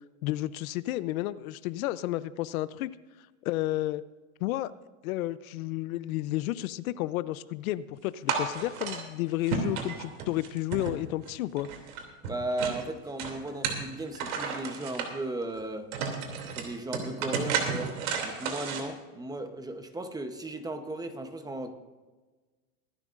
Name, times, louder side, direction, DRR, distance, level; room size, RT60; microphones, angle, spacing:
voice 1, 0.2-2.9 3.4-4.0 4.4-4.7 5.0-11.7, left 16 dB, 75° left, 16 dB, 0.7 m, -31 dB
sound 1, 8.3-9.0 9.5-11.3 11.6-12.8 13.2-15.1 15.6-15.7 15.9-18.8, right 6 dB, 75° right, 2.9 m, -32 dB
voice 2, 12.2-15.9 16.5-18.0 18.2-21.7, right 2 dB, 10° right, 8 dB, 0.8 m, -36 dB
23.0 x 12.0 x 2.5 m, 1.3 s
supercardioid pair, 135°, 43 cm